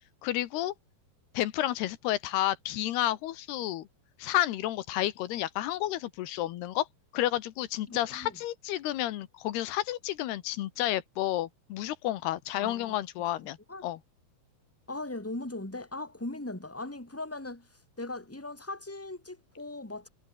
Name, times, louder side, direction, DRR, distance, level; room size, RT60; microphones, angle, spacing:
voice 1, 0.2-0.7 1.3-3.9 4.2-6.9 7.1-13.6 13.8-14.0, left 14 dB, 80° left, 3.2 m, -31 dB
voice 2, 7.9-8.4 12.5-13.0 13.7-13.8 14.9-17.7 18.0-20.1, left 2 dB, 5° left, 3.6 m, -39 dB
omnidirectional pair, 4.7 m